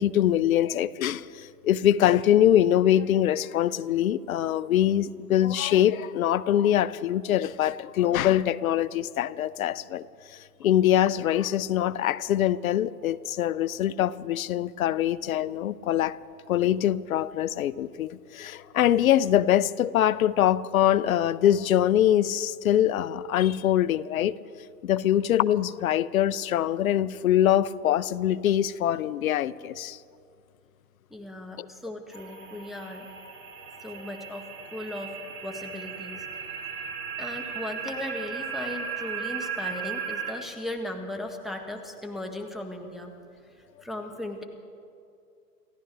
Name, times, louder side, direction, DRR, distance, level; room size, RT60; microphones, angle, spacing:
voice 1, 0.0-10.1 10.6-16.2 16.5-24.4 24.8-30.0 31.6-31.7, left 11 dB, 60° left, 18 dB, 0.6 m, -23 dB
voice 2, 31.1-33.1 33.8-35.2 35.4-36.3 36.8-36.9 37.2-43.1 43.8-44.4, left 1 dB, ahead, 5 dB, 1.3 m, -37 dB
sound 1, 32.1-40.3, right 6 dB, 75° right, 3.8 m, -36 dB
28.0 x 14.5 x 3.4 m, 2.5 s
figure-of-eight pair, 110°, 47 cm